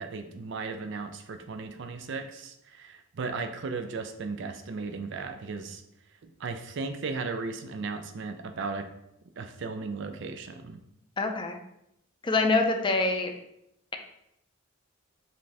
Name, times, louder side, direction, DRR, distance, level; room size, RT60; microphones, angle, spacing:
voice 1, 0.0-5.8 6.2-8.8 9.4-10.8, right 4 dB, 60° right, 7 dB, 0.5 m, -36 dB
voice 2, 11.2-11.6 12.2-13.3, left 3 dB, 25° left, 4 dB, 0.4 m, -25 dB
5.4 x 2.7 x 3.3 m, 0.81 s
head